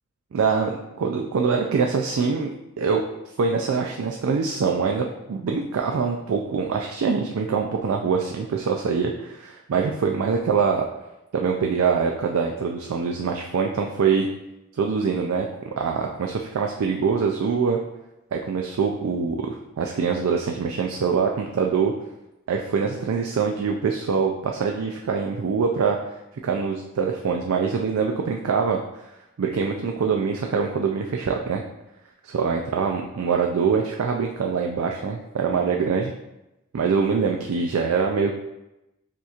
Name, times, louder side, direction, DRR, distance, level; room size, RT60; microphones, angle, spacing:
voice 1, 0.3-3.0 3.4-10.9 11.3-14.3 14.8-15.5 15.8-17.8 18.3-21.9 22.5-26.0 26.4-28.8 29.4-31.6 32.2-36.1 36.7-38.3, right 5 dB, 75° right, 2 dB, 0.4 m, -24 dB
6.7 x 3.0 x 2.4 m, 0.93 s
head